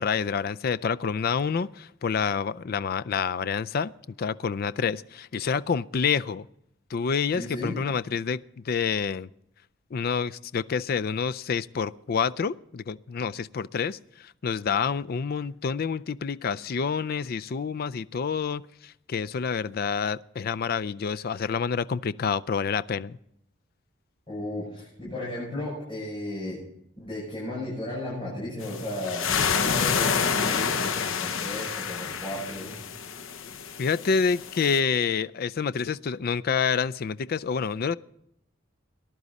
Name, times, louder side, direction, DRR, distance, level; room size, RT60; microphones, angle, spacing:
voice 1, 0.0-3.9 4.2-6.4 6.9-9.3 9.9-23.2 33.8-38.0, left 6 dB, 50° left, 14 dB, 0.4 m, -28 dB
voice 2, 7.3-7.8 24.3-26.6 27.0-32.7, left 1 dB, 25° left, -7 dB, 6.4 m, -34 dB
sound 1, 28.6-34.8, left 6 dB, 80° left, 0.8 m, -28 dB
19.0 x 11.0 x 4.1 m, 0.76 s
head